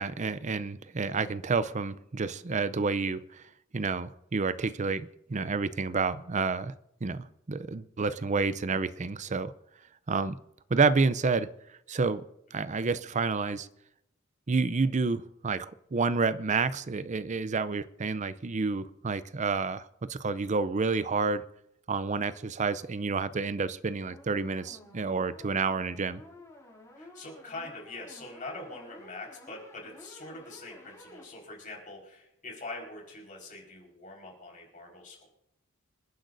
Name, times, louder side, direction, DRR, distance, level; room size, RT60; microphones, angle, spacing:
voice 1, 0.0-3.4 3.7-6.7 7.0-9.5 10.1-10.4 10.7-11.5 11.9-12.2 12.5-13.7 14.5-21.4 21.9-26.2, right 4 dB, 35° right, 15 dB, 0.5 m, -29 dB
sound 1, 24.0-31.2, left 1 dB, 15° left, 4.3 m, -52 dB
voice 2, 27.0-35.3, left 2 dB, 40° left, -1 dB, 4.6 m, -44 dB
27.0 x 10.0 x 2.6 m, 0.81 s
head